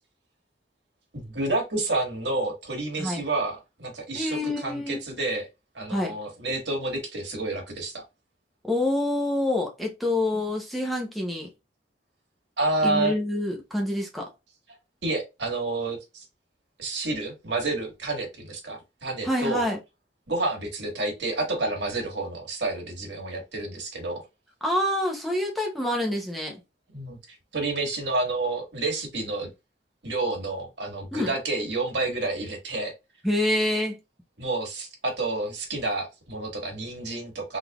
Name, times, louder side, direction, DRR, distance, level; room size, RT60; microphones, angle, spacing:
voice 1, 1.1-5.5 5.7-8.0 12.6-13.1 15.0-16.2 16.8-19.7 20.3-24.2 26.9-27.2 27.5-29.5 30.0-32.9 34.4-37.6, right 2 dB, 80° right, 1.7 m, -29 dB
voice 2, 4.1-5.0 5.9-6.1 8.6-11.5 12.8-14.3 19.2-19.8 24.6-26.6 31.1-31.3 33.2-34.0, left 1 dB, ahead, 0.8 m, -27 dB
3.8 x 3.3 x 2.4 m
head